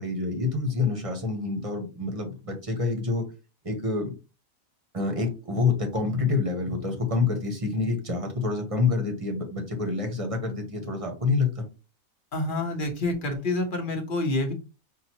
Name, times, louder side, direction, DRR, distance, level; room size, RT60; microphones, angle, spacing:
voice 1, 0.0-3.3 3.6-4.1 4.9-11.7, left 4 dB, 25° right, 4 dB, 1.0 m, -27 dB
voice 2, 12.3-14.5, left 2 dB, 40° left, 4 dB, 1.1 m, -27 dB
5.8 x 2.6 x 2.9 m, 0.30 s
omnidirectional pair, 1.5 m